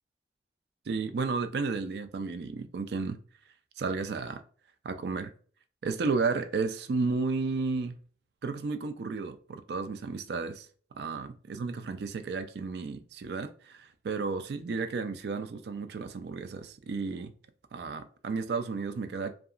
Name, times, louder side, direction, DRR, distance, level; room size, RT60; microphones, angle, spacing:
voice 1, 0.9-3.2 3.8-4.4 4.8-5.3 5.8-8.0 8.4-10.7 10.9-17.3 17.7-19.3, right 4 dB, 70° right, 0.4 m, -33 dB
2.8 x 2.3 x 2.4 m
head